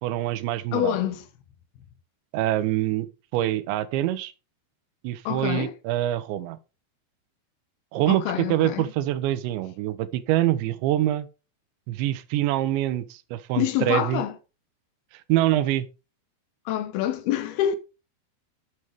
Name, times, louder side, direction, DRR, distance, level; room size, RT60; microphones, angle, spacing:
voice 1, 0.0-1.0 2.3-3.1 3.3-4.3 5.0-6.6 7.9-11.3 11.9-14.2 15.3-15.9, right 13 dB, 85° right, 3.1 m, -25 dB
voice 2, 0.7-1.3 5.3-5.7 8.1-8.9 13.6-14.4 16.7-17.8, left 11 dB, 75° left, 2.4 m, -26 dB
12.0 x 8.0 x 3.5 m
omnidirectional pair, 5.1 m